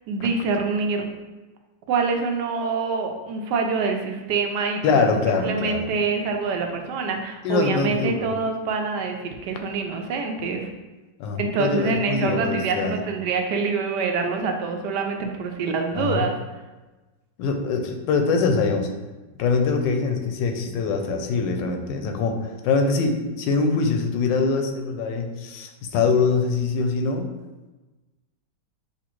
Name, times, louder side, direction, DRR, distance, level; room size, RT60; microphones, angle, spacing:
voice 1, 0.1-1.1 1.9-5.0 5.4-10.7 11.3-16.3, right 4 dB, 75° right, 3 dB, 1.1 m, -25 dB
voice 2, 4.8-5.9 7.4-8.4 11.2-13.0 15.9-16.3 17.4-18.9 19.4-27.3, left 4 dB, 85° left, 5 dB, 1.3 m, -23 dB
6.8 x 2.4 x 3.0 m, 1.2 s
omnidirectional pair, 1.9 m